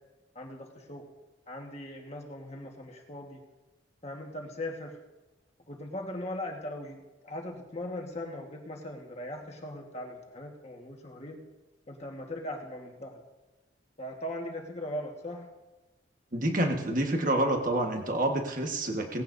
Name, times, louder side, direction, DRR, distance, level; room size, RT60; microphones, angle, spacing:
voice 1, 0.3-1.1 1.5-3.4 4.0-5.0 5.7-11.4 11.9-13.2 14.0-15.5, left 1 dB, 35° left, 1 dB, 1.5 m, -39 dB
voice 2, 16.3-19.2, right 1 dB, 45° right, 3 dB, 1.4 m, -28 dB
18.5 x 15.5 x 2.7 m, 1.1 s
head